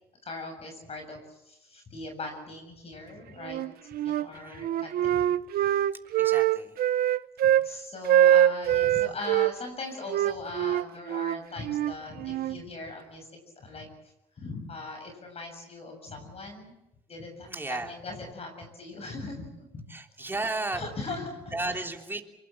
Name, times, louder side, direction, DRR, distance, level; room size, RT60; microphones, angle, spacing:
voice 1, 0.2-3.6 4.0-5.2 5.5-5.8 7.4-13.3 13.6-13.9 14.4-16.8 17.1-19.8 20.7-21.8, left 3 dB, 35° left, 4 dB, 7.4 m, -40 dB
Wind instrument woodwind instrument, 3.4-4.3 4.6-7.7 8.0-9.5 10.1-12.6, right 12 dB, 65° right, 0.8 m, -24 dB
voice 2, 6.2-6.8 17.5-17.9 19.9-20.8 21.5-22.2, right 2 dB, 15° right, 3 dB, 3.3 m, -33 dB
26.5 x 23.0 x 7.4 m, 0.88 s
cardioid pair, 110°, 17 cm